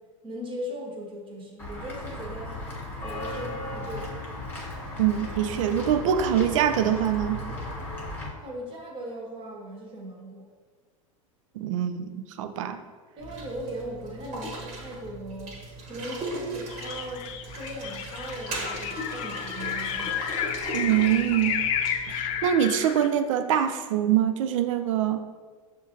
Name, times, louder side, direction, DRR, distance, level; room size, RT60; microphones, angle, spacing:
voice 1, 0.2-2.6 3.0-4.1 8.3-10.5 13.2-20.2, equal, 30° right, 0 dB, 1.1 m, -38 dB
Walk footsteps / Bell, 1.6-8.3, left 1 dB, 10° left, 1.3 m, -36 dB
voice 2, 5.0-7.4 11.6-12.8 20.7-21.6 22.1-25.2, right 10 dB, 70° right, 9 dB, 0.4 m, -24 dB
sound 1, 13.2-22.5, right 2 dB, 45° right, 1.2 m, -38 dB
sound 2, 16.7-23.1, left 9 dB, 40° left, 0.4 m, -32 dB
6.8 x 2.5 x 2.8 m, 1.5 s
hypercardioid pair, 90°, 17 cm